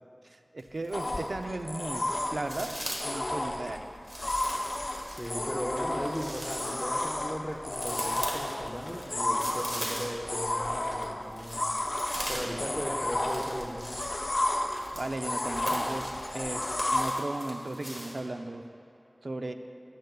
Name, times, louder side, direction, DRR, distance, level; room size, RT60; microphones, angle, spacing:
voice 1, 0.3-2.0 2.3-2.7 3.0-3.9 15.0-16.1 16.3-16.6 16.9-18.6 19.2-19.5, right 2 dB, 85° right, 6 dB, 0.4 m, -36 dB
sound 1, 0.6-1.4 1.7-3.2 4.0-10.4 10.7-18.2, right 1 dB, 60° right, 1.6 m, -41 dB
sound 2, 0.9-17.1, left 1 dB, 65° left, 0.7 m, -32 dB
voice 2, 5.1-11.8 12.3-13.8, equal, 5° right, 0 dB, 1.0 m, -37 dB
14.0 x 9.4 x 2.3 m, 2.7 s
wide cardioid pair, 55°, 0 cm